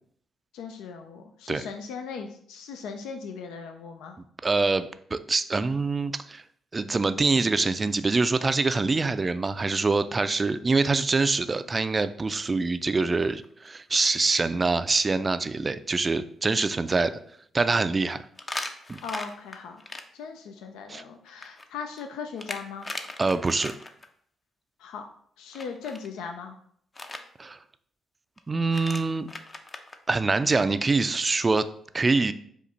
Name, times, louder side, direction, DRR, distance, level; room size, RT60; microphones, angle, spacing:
voice 1, 0.5-4.2 19.0-19.8 20.1-22.9 24.8-25.0 25.4-26.6, left 5 dB, 80° left, 5 dB, 0.3 m, -38 dB
voice 2, 4.4-6.4 6.7-17.2 17.5-18.3 18.9-19.0 20.9-21.0 23.2-23.7 27.4-27.6 28.5-29.3 30.1-31.7 31.9-32.3, right 3 dB, 35° right, 12 dB, 0.3 m, -25 dB
sound 1, 13.4-13.7 14.0-14.1 14.6-14.7 15.0-15.1 18.4-20.0 21.2-24.1 25.5-26.1 26.9-27.2 28.4-28.5 28.7-30.0, left 2 dB, 35° left, 0.6 m, -38 dB
5.2 x 2.4 x 4.0 m, 0.63 s
hypercardioid pair, 45°, 0 cm